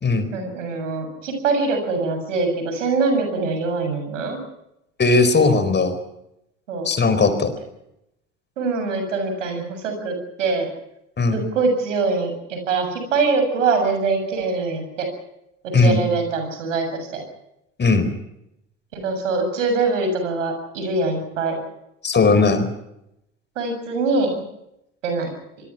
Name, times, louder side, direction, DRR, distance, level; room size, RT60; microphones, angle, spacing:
voice 1, 0.3-4.4 6.7-6.9 8.6-10.7 11.3-15.1 15.6-17.2 18.9-21.6 23.6-24.4 25.0-25.3, right 3 dB, 80° right, 6 dB, 7.4 m, -23 dB
voice 2, 5.0-6.0 6.8-7.5 11.2-11.4 15.7-16.0 17.8-18.1 22.0-22.7, left 3 dB, 30° left, 10 dB, 4.6 m, -17 dB
27.0 x 21.5 x 6.0 m, 0.83 s
hypercardioid pair, 65°, 37 cm